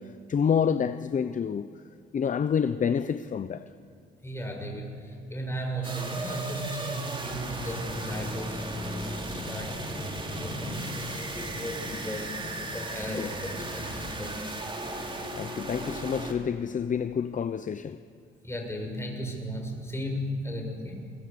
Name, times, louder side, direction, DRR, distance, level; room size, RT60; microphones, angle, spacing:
voice 1, 0.0-1.7 2.1-3.7 13.2-13.3 15.4-18.0, left 7 dB, 40° left, 0.8 m, -28 dB
voice 2, 4.2-9.8 10.3-12.4 12.7-14.4 18.4-21.1, equal, 15° left, 7.1 m, -36 dB
sound 1, 5.8-16.3, right 1 dB, 25° right, 3.9 m, -35 dB
28.0 x 24.5 x 7.0 m
cardioid pair, 90°, 20 cm